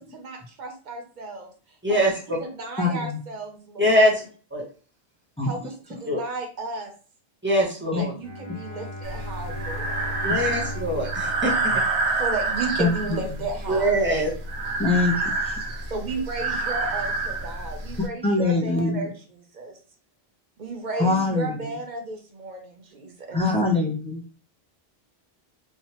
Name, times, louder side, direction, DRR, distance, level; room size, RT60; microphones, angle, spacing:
voice 1, 0.1-1.5 1.9-2.0 2.3-4.1 5.4-6.9 7.8-10.2 12.1-13.9 15.9-19.8 20.6-23.4, right 3 dB, 55° right, 3 dB, 0.7 m, -34 dB
voice 2, 1.8-2.4 3.8-4.2 4.5-4.6 6.0-6.2 7.4-8.1 10.2-11.7 13.7-14.3, equal, 15° right, -3 dB, 0.7 m, -22 dB
voice 3, 2.8-3.2 5.4-5.5 7.9-8.0 12.8-13.2 14.8-15.6 18.2-19.1 21.0-21.7 23.3-24.2, left 3 dB, 10° left, -1 dB, 0.3 m, -24 dB
Bowed string instrument, 8.2-12.6, left 1 dB, 40° left, 0.7 m, -38 dB
Breathing, 9.0-18.1, right 3 dB, 85° right, 0.9 m, -28 dB
3.1 x 2.1 x 2.8 m, 0.38 s
omnidirectional pair, 1.0 m